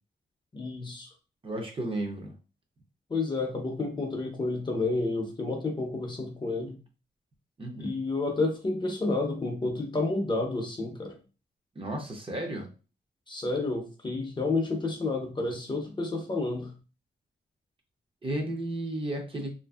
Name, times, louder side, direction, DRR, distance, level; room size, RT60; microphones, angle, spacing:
voice 1, 0.5-1.1 3.1-6.8 7.8-11.2 13.3-16.7, left 3 dB, 25° left, 2 dB, 0.5 m, -30 dB
voice 2, 1.4-2.3 7.6-7.9 11.8-12.7 18.2-19.5, right 1 dB, 30° right, 1 dB, 0.5 m, -33 dB
2.7 x 2.5 x 2.3 m, 0.34 s
wide cardioid pair, 135°, 18 cm